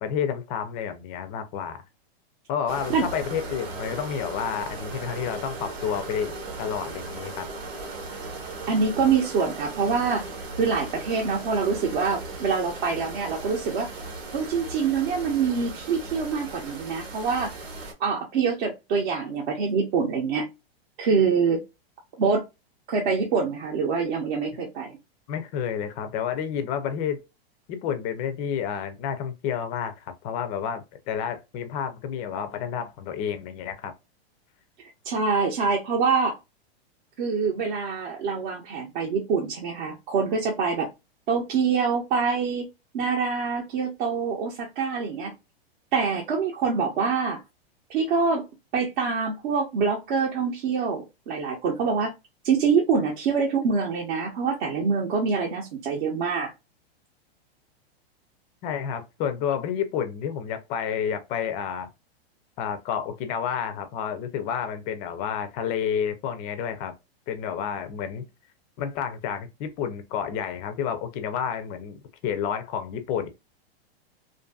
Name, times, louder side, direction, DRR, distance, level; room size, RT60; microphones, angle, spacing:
voice 1, 0.0-1.8 2.5-7.5 25.3-27.2 27.7-33.9 58.6-61.9 62.6-66.9 67.3-68.3 68.8-73.3, left 8 dB, 25° left, 0.3 m, -30 dB
sound 1, 2.7-17.9, right 3 dB, 85° right, 1.1 m, -37 dB
voice 2, 8.7-10.3 10.6-13.9 14.3-17.5 18.0-20.5 21.0-21.6 22.2-22.4 22.9-25.0 35.0-36.4 37.2-40.9 41.3-42.7 42.9-45.3 45.9-47.4 47.9-48.4 48.7-52.1 52.4-56.5, right 5 dB, 55° right, 0.8 m, -25 dB
2.5 x 2.5 x 2.2 m
hypercardioid pair, 140°, 31 cm